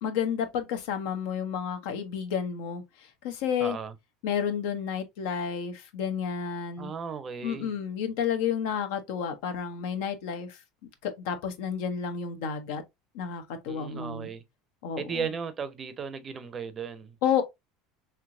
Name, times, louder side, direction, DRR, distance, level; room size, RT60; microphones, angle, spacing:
voice 1, 0.0-3.8 4.2-6.9 7.4-10.6 11.0-12.8 13.1-14.3 14.8-15.3 17.2-17.4, left 7 dB, 80° left, 0.8 m, -31 dB
voice 2, 3.6-3.9 6.8-7.7 13.7-14.4 15.0-17.2, right 6 dB, 30° right, 0.6 m, -36 dB
3.3 x 2.9 x 2.5 m
supercardioid pair, 110°, 0 cm